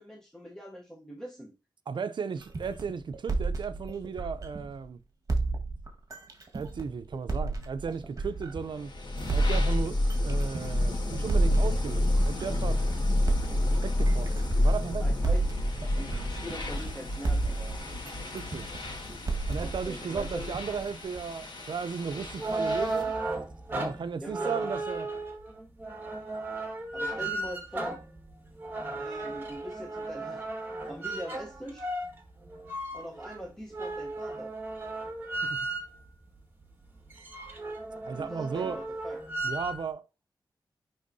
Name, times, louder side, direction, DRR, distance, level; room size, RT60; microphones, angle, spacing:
voice 1, 0.0-1.5 15.0-15.7 16.0-17.8 19.5-20.6 24.2-24.7 26.9-28.0 29.0-31.9 32.9-34.5 38.1-39.2, equal, 5° left, 0.9 m, -42 dB
voice 2, 1.9-5.0 6.5-8.9 9.3-12.8 13.8-15.0 18.3-18.7 19.5-23.1 23.7-25.1 38.0-38.8 39.4-40.0, right 6 dB, 70° right, 0.5 m, -35 dB
sound 1, 2.4-4.8 5.3-8.8 9.3-12.8 13.3-16.9 17.2-21.3, right 3 dB, 45° right, 1.5 m, -33 dB
The Shrinkening Ray, 8.6-23.2, left 1 dB, 65° left, 1.7 m, -29 dB
sound 2, 22.1-36.1 36.6-36.7 37.0-39.8, right 2 dB, 25° right, 1.7 m, -35 dB
10.5 x 3.6 x 2.7 m
wide cardioid pair, 120°, 8 cm